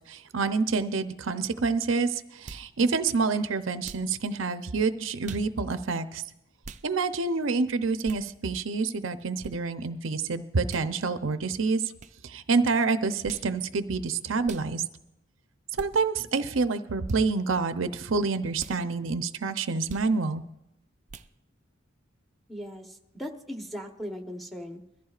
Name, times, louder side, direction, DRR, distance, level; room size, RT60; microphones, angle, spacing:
voice 1, 0.0-6.2 6.8-11.8 12.2-14.8 15.8-20.4, right 4 dB, 75° right, 10 dB, 0.7 m, -27 dB
sound 1, 2.5-2.7 3.8-4.1 5.2-5.5 6.6-6.9 8.0-8.3 9.4-9.5 10.7-10.9 12.0-12.1 13.2-13.5 14.4-14.7 15.7-15.9 17.0-17.2 18.6-18.8 19.9-20.1 21.1-21.3, right 4 dB, 35° right, 0.5 m, -43 dB
voice 2, 22.5-24.8, equal, ahead, 3 dB, 1.0 m, -38 dB
22.0 x 14.0 x 2.5 m, 0.85 s
head